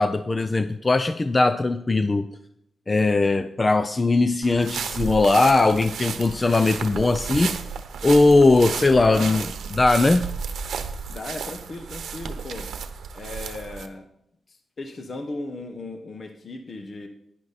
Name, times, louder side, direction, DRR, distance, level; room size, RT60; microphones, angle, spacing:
voice 1, 0.0-2.3 2.9-7.6 8.0-10.2, left 3 dB, 25° left, 11 dB, 0.5 m, -19 dB
sound 1, 4.4-13.9, right 6 dB, 75° right, 0.9 m, -33 dB
voice 2, 8.9-9.5 11.1-12.7 13.1-14.0 14.5-17.1, left 2 dB, 45° left, 5 dB, 1.0 m, -36 dB
10.5 x 10.0 x 4.1 m, 0.76 s
cardioid pair, 100°, 0 cm